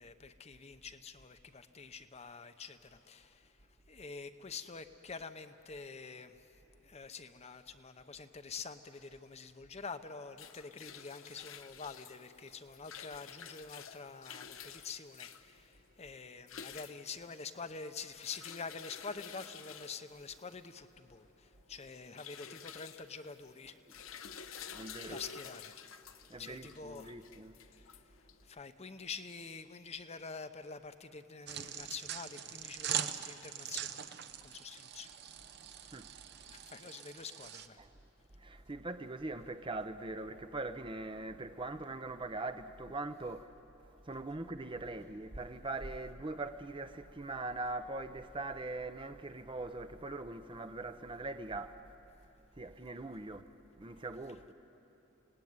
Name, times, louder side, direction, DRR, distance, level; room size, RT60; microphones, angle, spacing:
voice 1, 0.0-3.6 3.9-24.4 24.8-25.8 26.4-27.1 27.7-28.1 28.4-34.0 34.4-35.2 35.8-35.9 36.5-37.8, left 5 dB, 30° left, 0.8 m, -47 dB
sound 1, 10.1-28.6, left 7 dB, 80° left, 0.9 m, -51 dB
voice 2, 24.7-25.2 26.3-27.6 35.5-36.1 36.4-36.6 37.8-37.9 38.3-43.5 43.8-52.0 52.6-54.5, right 2 dB, 25° right, 0.7 m, -42 dB
sound 2, 31.5-37.7, right 9 dB, 55° right, 0.9 m, -42 dB
28.0 x 18.5 x 9.5 m
head